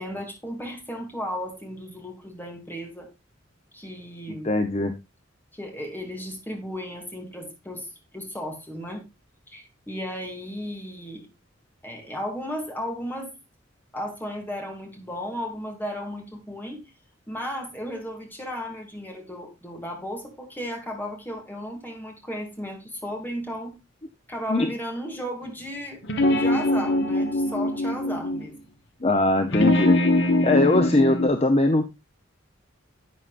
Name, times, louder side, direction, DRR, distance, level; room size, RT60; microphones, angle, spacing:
voice 1, 0.0-3.1 3.7-4.5 5.5-9.0 9.5-11.3 11.8-13.3 13.9-16.8 17.3-23.7 24.3-26.0 26.3-28.7, equal, 10° left, 2 dB, 2.7 m, -35 dB
voice 2, 4.4-4.9 24.5-24.7 29.0-30.0 30.4-31.8, left 2 dB, 30° left, 7 dB, 0.8 m, -21 dB
sound 1, 26.0-28.5 29.5-31.3, left 1 dB, 60° left, 1.2 m, -22 dB
11.0 x 8.3 x 2.5 m, 0.24 s
head